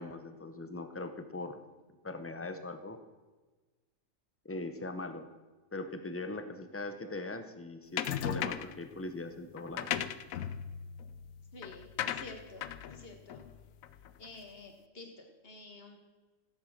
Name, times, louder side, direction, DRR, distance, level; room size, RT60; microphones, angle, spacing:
voice 1, 0.0-1.6 2.0-3.0 4.4-5.3 5.7-9.9, left 2 dB, 15° left, 8 dB, 0.7 m, -40 dB
sound 1, 8.0-8.8 9.6-14.3, left 10 dB, 85° left, 1.0 m, -37 dB
voice 2, 11.5-13.5 14.2-16.0, left 2 dB, 45° left, 4 dB, 2.0 m, -50 dB
13.5 x 8.1 x 6.6 m, 1.3 s
omnidirectional pair, 1.4 m